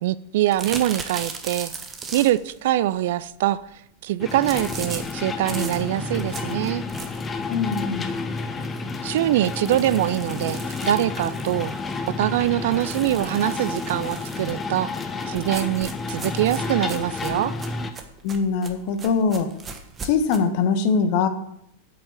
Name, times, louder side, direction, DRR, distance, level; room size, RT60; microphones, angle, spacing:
voice 1, 0.0-1.7 2.1-3.6 4.0-6.8 9.0-11.7 12.1-14.9 15.3-17.5, right 14 dB, 55° right, 0.4 m, -23 dB
sound 1, 0.5-2.6 4.5-7.4 7.8-7.9 8.3-8.4 8.7-8.8 9.4-11.9 12.7-14.5 15.3-20.4, right 5 dB, 20° right, 1.4 m, -38 dB
sound 2, 4.2-17.9, left 4 dB, 20° left, 1.1 m, -30 dB
voice 2, 7.5-8.1 18.2-19.5 20.0-21.3, left 5 dB, 45° left, 1.3 m, -22 dB
8.4 x 7.9 x 7.1 m
figure-of-eight pair, 90°, 0 cm